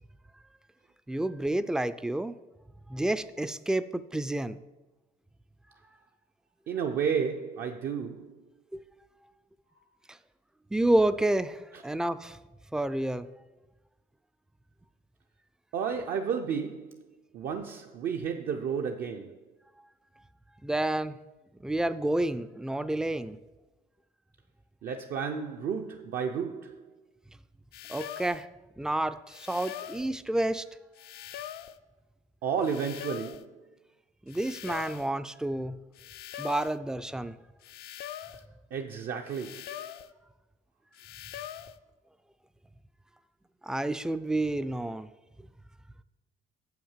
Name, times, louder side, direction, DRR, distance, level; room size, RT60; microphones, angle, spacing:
voice 1, 1.1-2.3 2.9-4.6 8.7-8.8 10.7-12.4 12.7-13.3 20.6-21.2 21.6-23.4 27.9-28.5 28.8-30.6 34.3-35.8 36.4-37.3 43.6-45.1, right 1 dB, 5° right, 0.3 m, -29 dB
voice 2, 6.7-8.4 11.7-11.8 15.7-17.0 17.3-19.4 24.8-26.8 32.4-33.6 38.7-39.8, right 6 dB, 60° right, 0.6 m, -32 dB
sound 1, 27.7-28.5 29.3-30.1 31.0-31.8 32.6-33.5 34.3-35.1 36.0-36.8 37.6-38.5 39.3-40.1 41.0-41.8, left 11 dB, 70° left, 0.4 m, -42 dB
7.2 x 5.8 x 7.3 m
cardioid pair, 110°, 17 cm